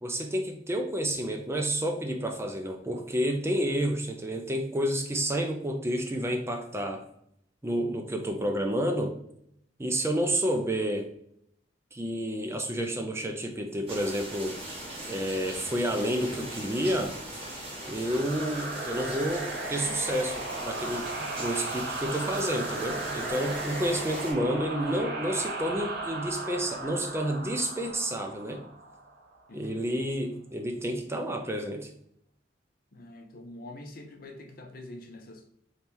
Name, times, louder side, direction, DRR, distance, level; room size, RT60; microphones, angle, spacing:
voice 1, 0.0-7.0 7.6-9.1 9.8-11.1 11.9-14.6 15.1-17.1 17.8-28.6 29.5-31.9, equal, 15° right, 3 dB, 0.5 m, -30 dB
sound 1, 13.9-24.3, right 1 dB, 35° right, 1.2 m, -40 dB
sound 2, 18.0-29.4, right 2 dB, 55° right, 1.1 m, -36 dB
voice 2, 29.5-29.9 32.9-35.5, left 1 dB, 55° left, 4 dB, 0.7 m, -45 dB
3.4 x 2.8 x 4.4 m, 0.71 s
head